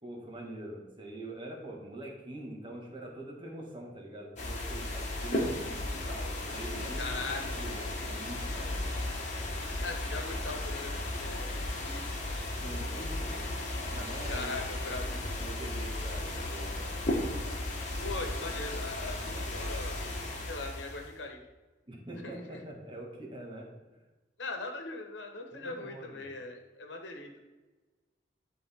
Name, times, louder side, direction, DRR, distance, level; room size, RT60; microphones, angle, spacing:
voice 1, 0.0-7.0 7.6-8.8 12.5-13.5 13.8-14.5 14.8-16.9 21.9-23.7 25.5-26.3, right 1 dB, 30° right, -1 dB, 1.6 m, -44 dB
sound 1, 4.4-21.2, left 1 dB, 40° left, 1.4 m, -35 dB
voice 2, 7.0-7.4 9.8-12.1 14.3-15.0 18.0-20.0 20.5-21.4 22.2-22.6 24.4-27.4, left 3 dB, 85° left, 3 dB, 1.2 m, -40 dB
10.5 x 4.0 x 3.6 m, 1.2 s
head